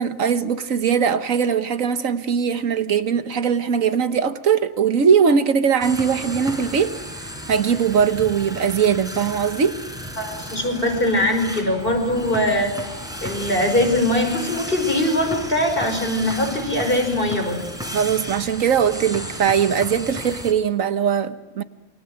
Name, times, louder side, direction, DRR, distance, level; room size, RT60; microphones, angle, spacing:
voice 1, 0.0-7.0 7.5-9.8 17.9-21.6, right 7 dB, 85° right, 1.6 m, -20 dB
sound 1, 5.8-20.5, equal, 5° right, 4.1 m, -34 dB
voice 2, 10.2-12.7 13.2-17.6, left 1 dB, 45° left, 5.6 m, -21 dB
28.5 x 22.5 x 8.0 m
omnidirectional pair, 1.4 m